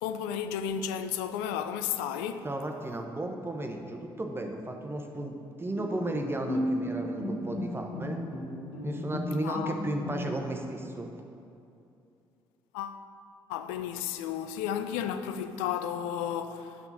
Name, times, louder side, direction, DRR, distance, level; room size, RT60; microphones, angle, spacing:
voice 1, 0.0-2.5 9.4-9.8 12.7-13.0 13.5-16.8, left 9 dB, 75° left, 0.4 m, -33 dB
voice 2, 2.4-5.3 5.6-8.2 8.8-11.1, right 1 dB, 20° right, 0.9 m, -34 dB
Bowed string instrument, 5.8-10.6, left 1 dB, 45° left, 1.5 m, -35 dB
10.5 x 5.9 x 2.8 m
hypercardioid pair, 45°, 13 cm